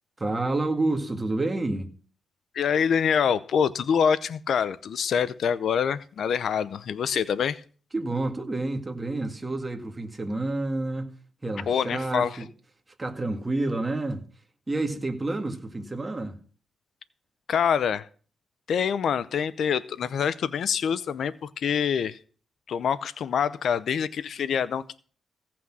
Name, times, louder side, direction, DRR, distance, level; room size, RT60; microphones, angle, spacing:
voice 1, 0.2-1.9 7.9-11.1 11.4-12.5 13.0-14.2 14.7-16.4, right 2 dB, 20° right, 2.1 m, -29 dB
voice 2, 2.5-7.6 11.7-12.4 17.5-18.1 18.7-22.2 22.7-25.0, left 7 dB, 70° left, 0.6 m, -25 dB
16.0 x 6.0 x 6.1 m
cardioid pair, 110°, 0 cm